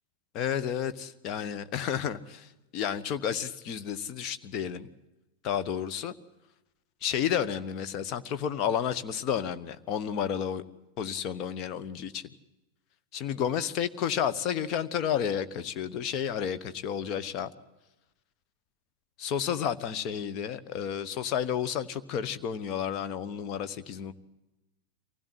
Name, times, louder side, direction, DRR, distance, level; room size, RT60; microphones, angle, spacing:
voice 1, 0.3-4.9 5.4-6.1 7.0-10.6 11.0-12.2 13.1-17.5 19.2-24.1, left 8 dB, 40° left, 11 dB, 1.1 m, -31 dB
24.0 x 16.5 x 7.9 m, 1.0 s
figure-of-eight pair, 90°, 0 cm